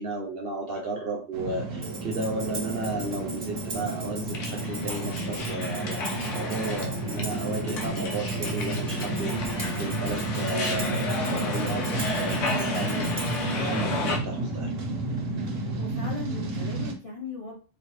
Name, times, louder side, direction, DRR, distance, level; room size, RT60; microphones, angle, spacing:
voice 1, 0.0-14.7, right 2 dB, 55° right, 1 dB, 0.7 m, -34 dB
sound 1, 1.3-16.9, right 2 dB, 75° right, 1.1 m, -31 dB
Tambourine, 1.8-13.5, right 2 dB, 40° right, 0.3 m, -40 dB
sound 2, 4.3-14.2, left 3 dB, 70° left, 1.1 m, -33 dB
voice 2, 4.6-4.9 15.5-17.5, left 4 dB, 35° left, -3 dB, 0.7 m, -39 dB
4.0 x 2.2 x 3.1 m, 0.37 s
omnidirectional pair, 1.4 m